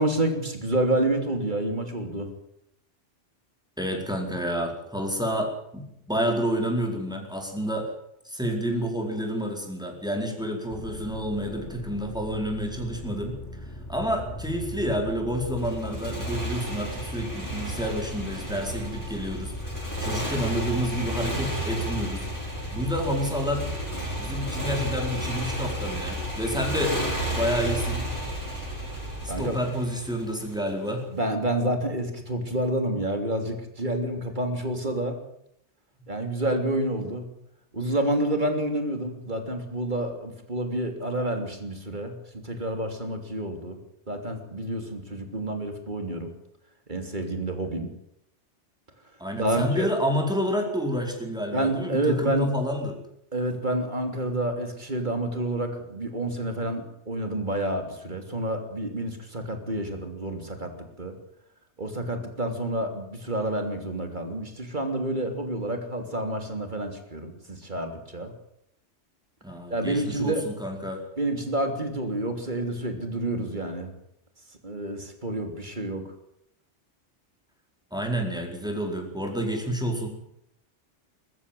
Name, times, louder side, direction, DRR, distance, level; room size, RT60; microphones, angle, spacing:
voice 1, 0.0-2.3 29.3-29.6 31.1-35.2 36.1-37.3 37.7-42.2 42.4-43.8 44.1-46.3 46.9-47.9 49.4-49.9 51.5-52.5 53.3-61.1 61.8-68.3 69.7-70.5 71.2-73.9 74.6-76.1, right 1 dB, 40° right, 6 dB, 3.3 m, -29 dB
voice 2, 3.8-7.9 8.2-13.4 13.9-22.3 22.7-23.7 24.2-27.0 27.3-28.1 29.4-31.0 49.2-53.0 69.4-71.0 77.9-80.1, equal, 5° right, 1 dB, 4.6 m, -29 dB
sound 1, 10.7-29.4, left 1 dB, 75° left, 5.2 m, -38 dB
Motorcycle, 15.6-30.7, right 1 dB, 15° left, 6.8 m, -33 dB
21.0 x 14.5 x 9.2 m, 0.76 s
omnidirectional pair, 1.2 m